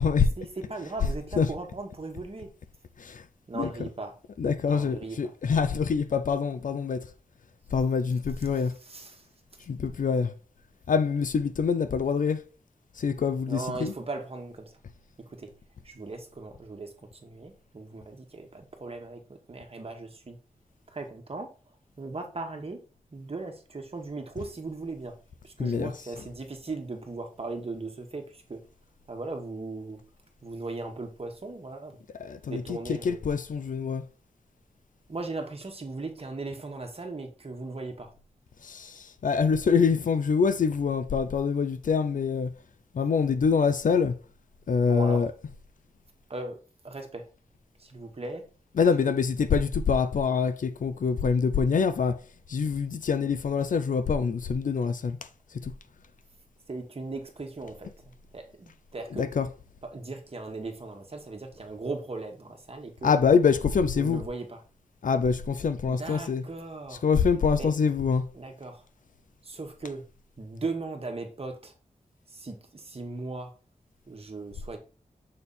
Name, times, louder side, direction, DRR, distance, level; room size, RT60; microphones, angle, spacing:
voice 1, 0.4-2.5 3.5-4.1 4.7-5.2 8.9-9.2 13.5-14.7 15.4-15.5 15.8-16.9 17.2-20.4 20.9-21.5 22.0-22.8 23.1-25.1 25.4-28.6 29.1-30.0 30.4-32.0 32.5-33.2 35.1-38.1 44.9-45.3 46.3-47.3 47.8-48.5 56.7-57.9 58.3-59.2 59.9-63.2 64.0-64.6 65.9-67.0 67.6-67.7 68.3-68.8 69.4-70.0 70.4-71.7 72.3-73.5 74.1-74.8, right 3 dB, 45° right, 1.5 m, -38 dB
voice 2, 3.5-3.9 4.4-7.1 7.7-8.7 9.7-10.3 10.9-12.4 13.0-13.9 25.6-25.9 32.2-34.1 38.6-42.5 42.9-44.2 44.7-45.3 48.8-52.2 52.5-55.2 55.5-55.7 59.1-59.5 63.0-64.2 65.0-66.4 66.9-68.3, left 5 dB, 80° left, 0.6 m, -25 dB
6.5 x 3.5 x 4.1 m
wide cardioid pair, 65°, 13 cm